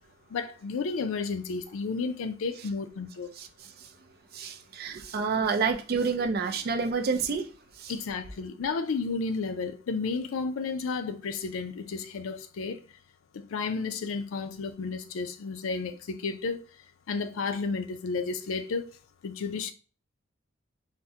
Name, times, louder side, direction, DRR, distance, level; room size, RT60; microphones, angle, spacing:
voice 1, 0.3-3.3 7.9-12.8 13.3-16.6 17.1-18.9 19.2-19.7, left 4 dB, 85° left, 0.4 m, -32 dB
voice 2, 3.4-3.9 4.3-7.5 7.8-7.9, right 5 dB, 50° right, 0.4 m, -29 dB
3.5 x 2.1 x 2.7 m
head